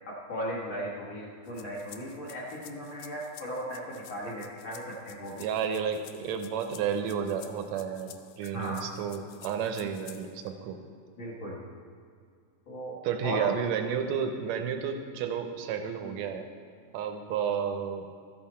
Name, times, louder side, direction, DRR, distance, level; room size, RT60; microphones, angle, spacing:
voice 1, 0.1-5.4 8.5-8.9 11.2-11.6 12.7-13.5, equal, 50° left, -5 dB, 1.6 m, -37 dB
sound 1, 1.5-10.5, left 12 dB, 80° left, 2.0 m, -52 dB
voice 2, 5.4-10.8 13.0-16.5 16.9-18.1, right 7 dB, 80° right, 6 dB, 1.6 m, -31 dB
14.0 x 7.8 x 4.3 m, 2.2 s
omnidirectional pair, 3.8 m